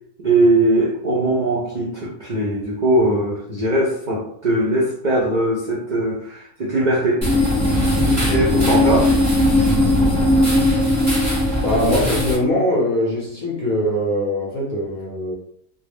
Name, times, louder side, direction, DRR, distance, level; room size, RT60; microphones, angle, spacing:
voice 1, 0.2-7.2 8.1-9.1, right 1 dB, 60° right, -4 dB, 0.4 m, -20 dB
sound 1, 7.2-12.3, left 1 dB, 15° right, 0.7 m, -18 dB
voice 2, 11.6-15.3, equal, 45° left, -5 dB, 0.6 m, -22 dB
2.3 x 2.0 x 3.3 m, 0.67 s
omnidirectional pair, 1.4 m